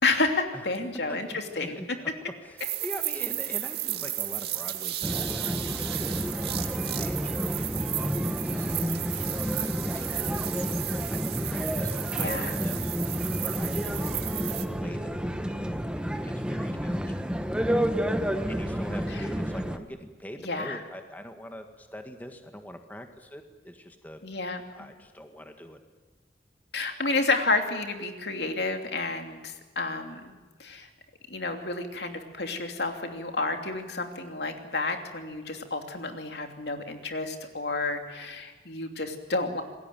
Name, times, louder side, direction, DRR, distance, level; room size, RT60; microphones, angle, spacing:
voice 1, 0.0-1.8 12.2-12.6 19.1-19.3 20.4-20.8 24.2-24.9 26.7-30.3 30.6-30.9 31.3-39.6, left 3 dB, 70° left, 5 dB, 2.9 m, -30 dB
voice 2, 1.1-2.1 2.4-6.3 6.8-12.9 13.4-14.5 14.8-17.3 18.5-24.2 24.7-25.8, equal, 10° left, 5 dB, 1.7 m, -43 dB
sound 1, 2.6-14.6, right 13 dB, 65° right, 2.0 m, -34 dB
sound 2, 5.0-19.8, equal, 5° right, 1.1 m, -30 dB
27.5 x 20.5 x 9.2 m, 1.2 s
head